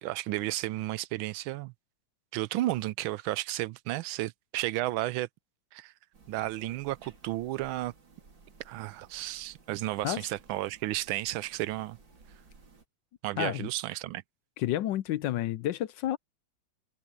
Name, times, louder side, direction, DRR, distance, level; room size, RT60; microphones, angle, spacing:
voice 1, 0.0-1.7 2.3-5.3 5.7-5.9 6.3-7.9 8.7-12.0 13.2-14.2, right 16 dB, 90° right, 1.4 m, -33 dB
sound 1, 6.1-12.9, right 4 dB, 70° right, 4.0 m, -58 dB
voice 2, 13.4-13.7 14.6-16.2, left 13 dB, 75° left, 1.2 m, -30 dB
omnidirectional pair, 2.1 m